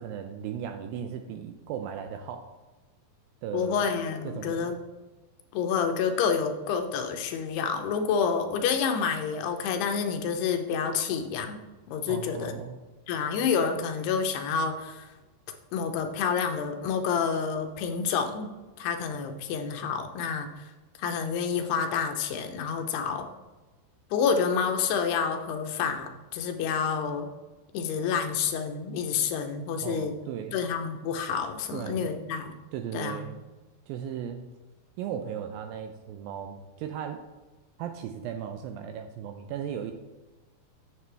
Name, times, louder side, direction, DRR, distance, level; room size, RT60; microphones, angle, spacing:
voice 1, 0.0-2.5 3.4-3.9 4.2-4.8 12.1-12.8 29.8-30.6 31.7-32.1 32.7-33.4 33.9-34.5 35.0-37.2 37.8-39.9, right 9 dB, 85° right, 6 dB, 2.1 m, -36 dB
voice 2, 3.5-4.7 5.5-11.6 11.9-12.5 13.1-15.1 15.7-18.5 18.8-20.7 21.0-23.3 24.1-27.3 27.7-30.1 30.5-32.5 32.9-33.4, left 6 dB, 90° left, 6 dB, 2.9 m, -28 dB
8.3 x 7.4 x 3.4 m, 1.1 s
omnidirectional pair, 4.6 m